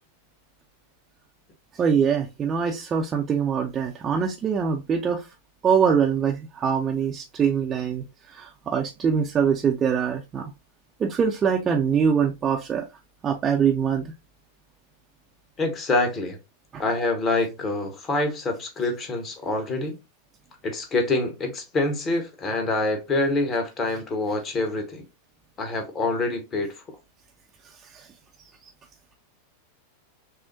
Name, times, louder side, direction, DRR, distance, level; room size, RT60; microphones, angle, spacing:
voice 1, 1.7-5.3 5.6-10.5 11.0-12.9 13.2-14.1 16.7-16.8 27.8-28.1, right 7 dB, 25° right, 0.5 m, -23 dB
voice 2, 15.6-16.4 16.8-19.9 20.6-25.0 25.6-26.7, left 2 dB, 25° left, 1.0 m, -26 dB
5.9 x 2.1 x 2.7 m
figure-of-eight pair, 90°, 0 cm